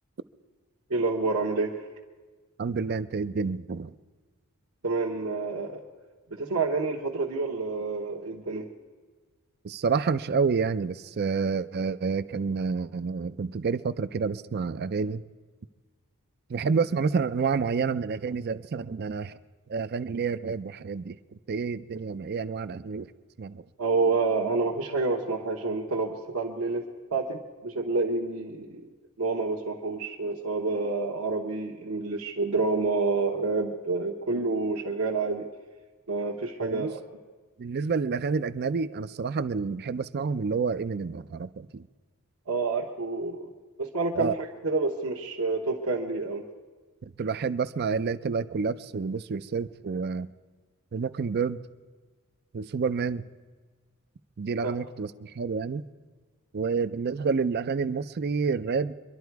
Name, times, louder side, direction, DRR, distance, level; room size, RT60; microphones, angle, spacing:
voice 1, 0.9-1.7 4.8-5.8 6.3-8.6 23.8-28.8 29.2-35.5 36.1-37.0 42.5-43.5 43.8-46.4 54.6-54.7, right 3 dB, 70° right, -3 dB, 1.2 m, -28 dB
voice 2, 2.6-3.9 9.6-15.2 16.5-19.4 19.7-21.2 21.5-23.1 23.4-23.6 36.6-37.0 37.6-41.9 44.1-44.4 47.0-50.3 50.9-51.6 52.5-53.2 54.4-55.8 56.5-58.9, right 5 dB, 45° right, 14 dB, 0.4 m, -29 dB
24.5 x 11.5 x 4.7 m, 1.4 s
head